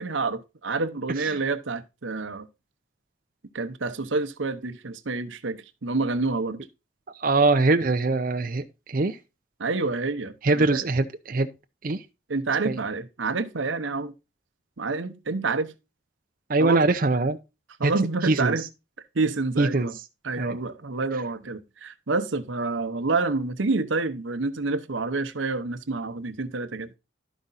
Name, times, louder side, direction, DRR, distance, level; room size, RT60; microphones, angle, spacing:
voice 1, 0.0-2.5 3.5-6.6 9.6-10.9 12.3-14.1 14.8-15.7 16.6-16.9 17.8-18.7 19.1-20.0 20.2-26.9, right 3 dB, 85° right, 0.9 m, -28 dB
voice 2, 7.2-9.2 10.4-11.5 11.8-12.0 12.6-12.8 16.5-17.4 17.8-17.9 18.2-18.6 19.6-19.9 20.4-20.6, right 3 dB, 45° right, 0.5 m, -23 dB
12.0 x 5.0 x 4.0 m
head